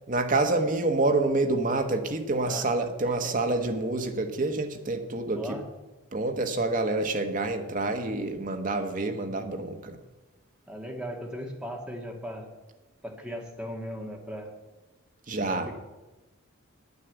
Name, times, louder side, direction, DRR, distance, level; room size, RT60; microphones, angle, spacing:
voice 1, 0.1-5.6 6.1-10.0 15.3-15.7, right 2 dB, 40° right, 6 dB, 1.2 m, -27 dB
voice 2, 5.4-5.7 10.7-12.5 13.0-14.5 15.5-15.7, equal, 5° right, 0 dB, 1.8 m, -37 dB
9.5 x 9.2 x 8.1 m, 1.1 s
head